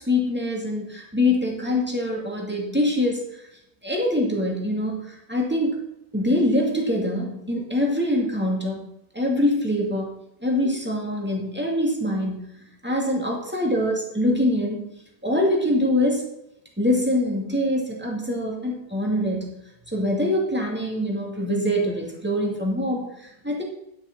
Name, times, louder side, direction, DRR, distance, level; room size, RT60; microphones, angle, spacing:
voice 1, 0.0-3.5 3.8-5.8 6.1-8.9 9.1-10.1 10.4-14.9 15.2-16.3 16.8-19.5 19.9-23.6, left 1 dB, 10° right, -2 dB, 2.3 m, -24 dB
10.5 x 6.3 x 6.0 m, 0.85 s
omnidirectional pair, 1.1 m